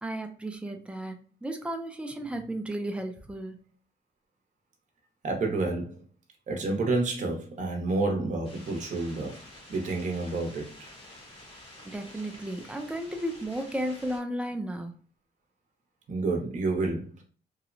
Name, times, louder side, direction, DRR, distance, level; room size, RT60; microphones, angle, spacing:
voice 1, 0.0-3.7 11.9-15.0, right 1 dB, 5° right, 0.3 m, -34 dB
voice 2, 5.2-5.9 6.5-9.4 9.7-10.9 16.1-17.2, right 3 dB, 45° right, 0.8 m, -29 dB
sound 1, 8.4-14.2, left 1 dB, 30° left, 0.9 m, -49 dB
2.8 x 2.0 x 2.5 m
cardioid pair, 135°, 18 cm